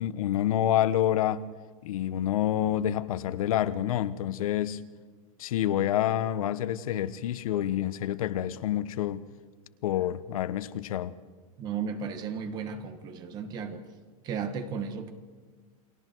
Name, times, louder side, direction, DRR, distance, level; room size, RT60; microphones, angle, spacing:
voice 1, 0.0-1.5 1.8-4.8 5.4-9.2 9.8-11.2, left 11 dB, 80° left, 1.1 m, -28 dB
voice 2, 11.6-13.8 14.2-15.1, right 6 dB, 25° right, 1.7 m, -34 dB
29.5 x 23.0 x 4.6 m
supercardioid pair, 175°, 18 cm